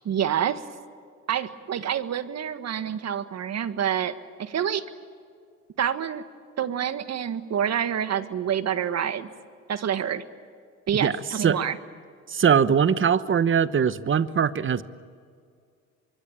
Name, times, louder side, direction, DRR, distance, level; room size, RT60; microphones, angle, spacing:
voice 1, 0.0-0.6 1.3-4.1 4.4-4.8 5.8-6.2 6.6-9.3 9.7-10.2 10.9-11.8, right 9 dB, 60° right, 11 dB, 1.6 m, -27 dB
voice 2, 11.0-11.6 12.3-14.8, right 7 dB, 40° right, 15 dB, 1.1 m, -21 dB
25.0 x 23.5 x 8.7 m, 2.2 s
cardioid pair, 90°, 30 cm